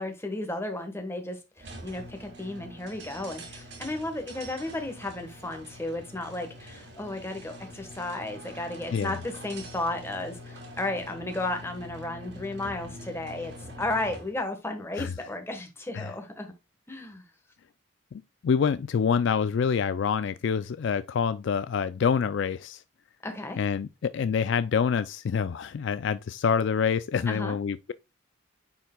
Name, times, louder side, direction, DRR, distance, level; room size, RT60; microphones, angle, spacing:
voice 1, 0.0-16.5 16.9-17.2 23.2-23.6 27.3-27.5, left 2 dB, 10° left, 1.2 m, -34 dB
sound 1, 1.6-14.4, equal, 55° right, 2.2 m, -44 dB
voice 2, 18.1-22.8 23.6-27.9, left 6 dB, 60° left, 0.3 m, -26 dB
9.2 x 4.5 x 2.2 m
head